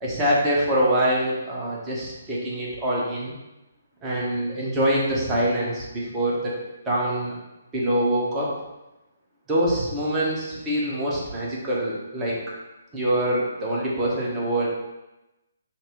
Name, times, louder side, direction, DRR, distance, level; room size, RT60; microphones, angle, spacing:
voice 1, 0.0-3.3 4.0-6.6 6.9-7.3 7.7-8.5 9.5-12.4 12.9-14.7, right 1 dB, 15° right, -5 dB, 1.0 m, -24 dB
5.7 x 2.1 x 3.0 m, 0.99 s
figure-of-eight pair, 135°, 0 cm